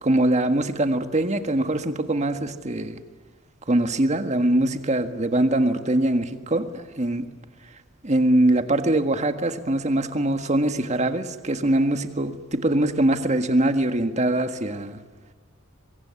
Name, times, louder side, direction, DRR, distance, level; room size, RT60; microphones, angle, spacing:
voice 1, 0.0-3.0 3.7-7.3 8.0-15.0, right 1 dB, 35° right, 8 dB, 1.7 m, -22 dB
23.5 x 23.5 x 9.7 m, 1.4 s
head